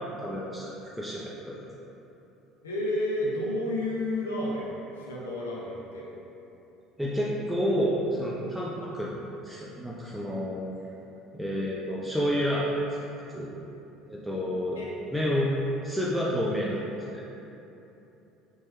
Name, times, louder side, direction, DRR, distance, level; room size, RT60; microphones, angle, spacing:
voice 1, 0.2-0.7 1.0-1.5 7.0-9.2 9.4-10.6 11.3-12.7 13.3-13.5 14.1-14.8 15.1-15.5 15.8-17.2, equal, 5° right, -6 dB, 0.4 m, -29 dB
voice 2, 2.6-6.1 14.8-14.9, left 1 dB, 90° left, -5 dB, 0.4 m, -31 dB
3.0 x 2.2 x 2.9 m, 2.9 s
hypercardioid pair, 65°, 0 cm